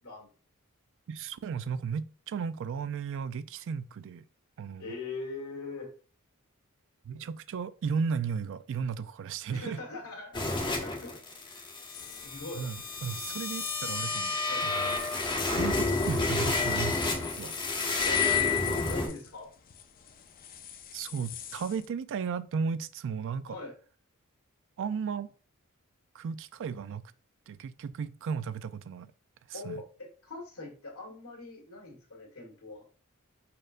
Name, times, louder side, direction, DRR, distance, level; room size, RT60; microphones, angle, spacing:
voice 1, 1.1-4.2 4.6-4.9 7.1-9.8 12.6-14.4 14.6-14.9 15.5-17.5 20.9-23.6 24.8-25.3 26.1-27.0 27.5-29.1 29.5-29.8, right 6 dB, 60° right, 0.3 m, -35 dB
voice 2, 4.8-5.9 9.5-10.4 10.8-12.7 14.4-14.7 18.1-18.2 18.7-19.5 23.5-23.7 29.5-32.9, left 3 dB, 85° left, 1.6 m, -42 dB
sound 1, 10.3-19.1, left 3 dB, 20° left, 0.8 m, -30 dB
sound 2, 11.9-21.9, left 10 dB, 40° left, 0.4 m, -44 dB
5.0 x 4.3 x 2.5 m
head